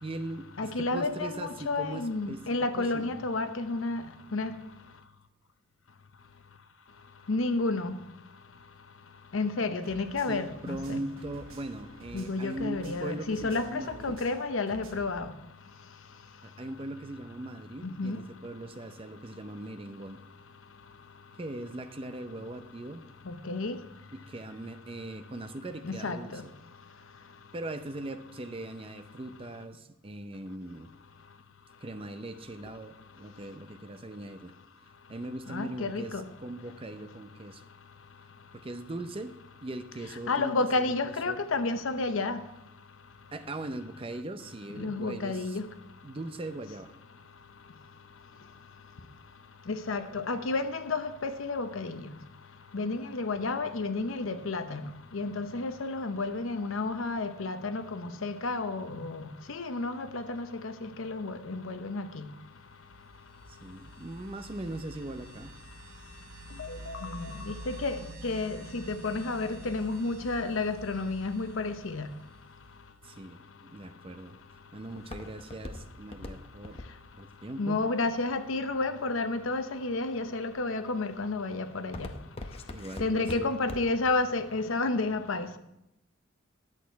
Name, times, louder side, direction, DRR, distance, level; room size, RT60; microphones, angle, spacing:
voice 1, 0.0-3.3 9.7-9.8 10.3-14.2 16.4-20.2 21.4-23.0 24.1-26.5 27.5-30.9 31.8-34.5 35.1-37.6 38.5-41.4 43.3-45.6 46.0-46.9 63.5-65.5 73.0-74.4 74.7-76.8 77.2-77.8 82.7-83.5, right 2 dB, 25° right, 0.6 m, -40 dB
voice 2, 0.6-4.5 7.3-8.0 9.3-11.0 12.1-15.3 17.8-18.2 23.3-23.8 25.8-26.4 35.5-36.3 40.3-42.4 44.8-45.7 49.7-52.1 52.7-54.8 55.1-59.2 59.5-62.3 66.6-72.1 77.6-82.1 83.0-85.6, left 3 dB, 80° left, 0.8 m, -31 dB
sound 1, 9.8-15.2, right 2 dB, 85° right, 1.0 m, -51 dB
sound 2, 62.6-73.1, right 1 dB, 45° right, 1.3 m, -48 dB
Walk footsteps, 73.8-79.0 79.6-80.0 80.5-80.9 81.2-84.1 84.4-84.5, left 1 dB, 30° left, 0.7 m, -42 dB
10.5 x 8.4 x 4.5 m
head